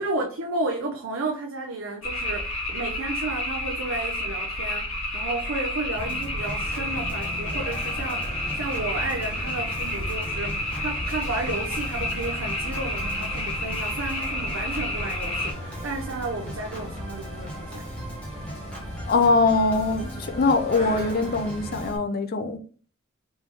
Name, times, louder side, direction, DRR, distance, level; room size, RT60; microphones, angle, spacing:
voice 1, 0.0-17.9, right 2 dB, 70° right, 0.6 m, -32 dB
sound 1, 2.0-15.5, left 1 dB, 90° left, 1.9 m, -30 dB
Organ, 6.0-22.0, equal, 5° left, 1.4 m, -38 dB
sound 2, 6.3-21.9, equal, 35° left, 1.6 m, -39 dB
voice 2, 19.1-22.6, left 3 dB, 50° left, 0.5 m, -22 dB
4.4 x 3.4 x 3.0 m
head